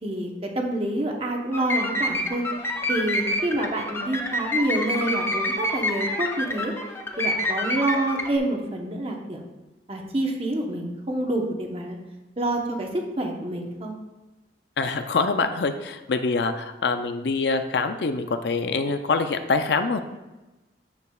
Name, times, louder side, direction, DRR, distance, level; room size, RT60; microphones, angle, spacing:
voice 1, 0.0-2.4 2.9-6.7 7.2-9.4 9.9-12.0 12.4-13.9, right 1 dB, 35° right, 1 dB, 1.0 m, -27 dB
sound 1, 1.5-8.3, left 1 dB, 15° left, 0.6 m, -28 dB
voice 2, 14.8-20.0, left 4 dB, 65° left, 8 dB, 0.5 m, -25 dB
9.3 x 7.0 x 2.4 m, 1.1 s
head